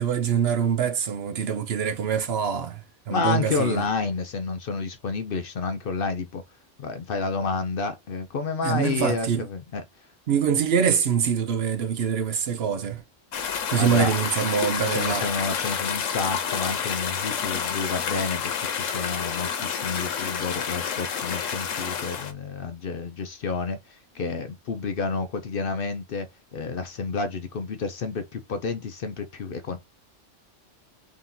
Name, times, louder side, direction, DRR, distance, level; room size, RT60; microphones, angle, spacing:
voice 1, 0.0-3.8 8.6-9.5 10.3-13.0 13.7-15.3, right 7 dB, 65° right, 0.8 m, -24 dB
voice 2, 3.1-6.4 6.8-9.8 13.8-14.1 14.9-26.3 26.5-29.8, left 4 dB, 55° left, 0.7 m, -30 dB
sound 1, 13.3-22.3, left 7 dB, 85° left, 1.2 m, -29 dB
3.7 x 2.8 x 3.7 m
omnidirectional pair, 1.3 m